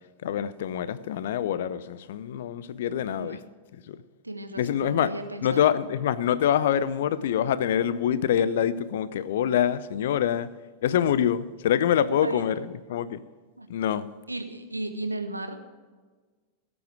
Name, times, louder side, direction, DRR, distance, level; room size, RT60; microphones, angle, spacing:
voice 1, 0.2-3.4 3.9-4.0 4.6-5.1 5.4-10.5 10.8-13.2 13.7-14.1, left 9 dB, 60° left, 0.6 m, -25 dB
voice 2, 4.2-5.6 11.9-12.4 13.6-13.7 14.3-15.6, right 2 dB, 85° right, 1.1 m, -35 dB
17.0 x 8.7 x 4.9 m
figure-of-eight pair, 90°, 0 cm